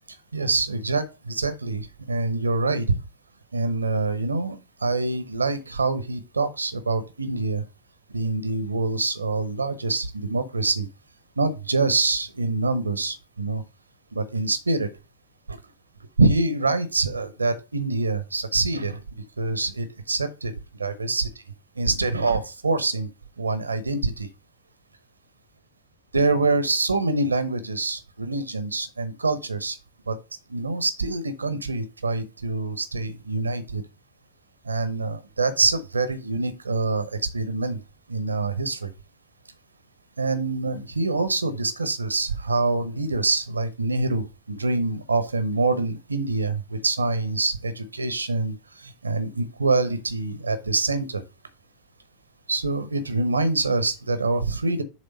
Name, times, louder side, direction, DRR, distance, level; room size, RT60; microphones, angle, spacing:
voice 1, 0.3-3.0 3.5-7.6 8.1-10.9 11.4-13.6 14.1-14.9 15.5-15.6 16.2-19.0 19.4-21.3 21.8-23.1 23.4-24.3 26.1-29.8 30.1-30.2 30.5-33.8 34.6-37.8 38.1-38.9 40.2-51.2 52.5-54.8, right 3 dB, 80° right, 0.8 m, -25 dB
7.4 x 3.3 x 5.4 m
figure-of-eight pair, 90°, 0 cm